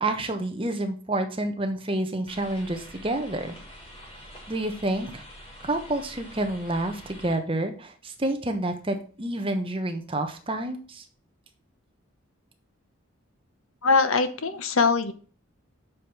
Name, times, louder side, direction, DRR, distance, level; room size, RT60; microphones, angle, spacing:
voice 1, 0.0-3.6 4.5-5.2 5.6-11.0, right 1 dB, 25° right, 6 dB, 1.1 m, -29 dB
sound 1, 2.3-7.4, equal, 25° left, 3.5 m, -46 dB
voice 2, 13.8-15.1, left 4 dB, 80° left, 10 dB, 1.1 m, -22 dB
7.5 x 5.2 x 6.0 m, 0.40 s
head